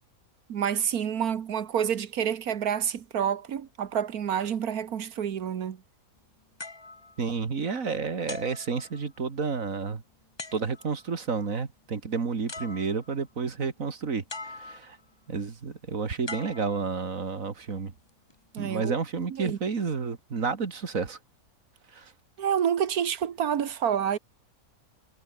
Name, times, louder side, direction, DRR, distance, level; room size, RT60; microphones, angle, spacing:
voice 1, 0.5-5.8 18.5-19.0 19.3-19.6 22.4-24.2, right 8 dB, 85° right, 1.7 m, -28 dB
sound 1, 6.6-7.8 8.3-9.4 10.4-11.1 12.1-12.2 12.5-13.3 14.3-15.1 16.3-17.4 18.1-18.3, left 3 dB, 20° left, 1.1 m, -43 dB
voice 2, 7.2-10.0 10.5-15.0 15.3-17.9 18.6-21.2 21.9-22.1, right 5 dB, 65° right, 2.4 m, -31 dB
omnidirectional pair, 1.5 m